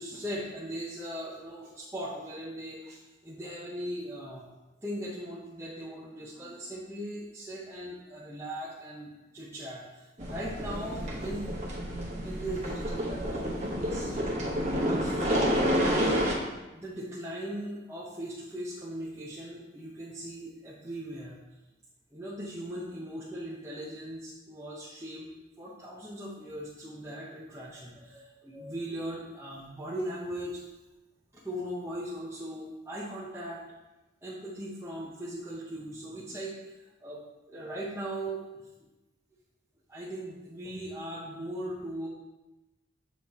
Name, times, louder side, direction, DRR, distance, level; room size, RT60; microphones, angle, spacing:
voice 1, 0.0-4.5 4.8-11.5 11.9-14.2 14.6-15.4 15.8-16.3 16.7-21.4 22.1-30.6 31.3-33.6 34.2-38.7 39.9-42.1, right 1 dB, 15° right, -7 dB, 0.7 m, -39 dB
sound 1, 10.2-16.3, equal, 35° right, 1.0 m, -29 dB
7.5 x 3.1 x 4.1 m, 1.1 s
head